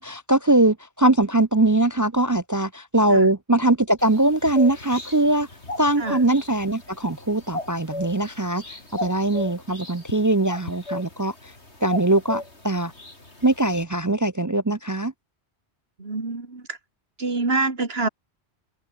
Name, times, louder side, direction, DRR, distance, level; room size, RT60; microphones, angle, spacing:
voice 1, 0.0-5.5 5.8-11.5 11.8-12.9 13.4-15.1, right 2 dB, 25° right, 0.4 m, -21 dB
sound 1, 4.0-13.8, left 2 dB, 80° left, 5.3 m, -37 dB
voice 2, 16.0-16.8 17.2-18.1, right 3 dB, 65° right, 3.1 m, -26 dB
omnidirectional pair, 1.1 m